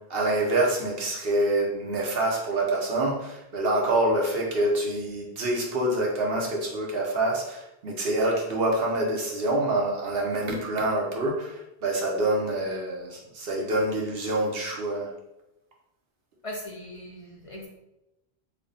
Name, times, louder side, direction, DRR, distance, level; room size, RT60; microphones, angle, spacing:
voice 1, 0.1-15.1, right 1 dB, 65° right, -1 dB, 1.0 m, -26 dB
voice 2, 16.4-17.7, left 1 dB, 40° left, -1 dB, 0.5 m, -39 dB
3.3 x 2.2 x 3.9 m, 0.89 s
omnidirectional pair, 1.1 m